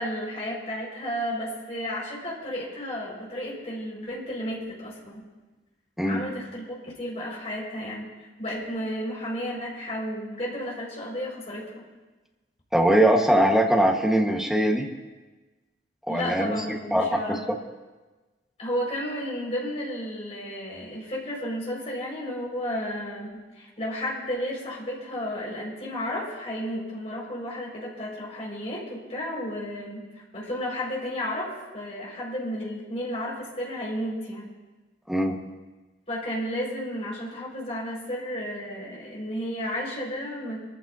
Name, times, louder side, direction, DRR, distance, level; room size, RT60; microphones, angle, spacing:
voice 1, 0.0-5.3 6.1-11.9 16.1-17.4 18.6-30.1 30.3-31.5 31.7-34.5 36.1-40.6, equal, 35° left, -4 dB, 5.5 m, -32 dB
voice 2, 12.7-14.9 16.1-16.6 16.9-17.2 35.1-35.4, right 1 dB, ahead, -1 dB, 1.4 m, -21 dB
24.5 x 14.5 x 2.8 m, 1.2 s
head